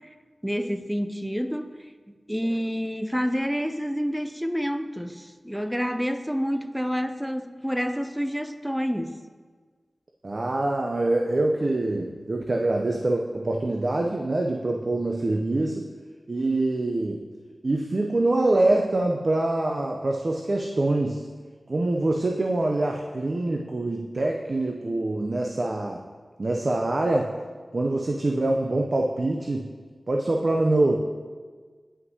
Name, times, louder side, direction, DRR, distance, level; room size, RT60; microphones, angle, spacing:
voice 1, 0.4-1.7 2.1-9.2, equal, ahead, 8 dB, 0.5 m, -28 dB
voice 2, 10.2-15.9 16.3-17.3 17.6-21.2 21.7-26.0 26.4-27.3 27.7-29.7 30.1-31.0, right 2 dB, 55° right, 1 dB, 0.5 m, -25 dB
9.7 x 5.4 x 2.8 m, 1.5 s
cardioid pair, 40°, 0 cm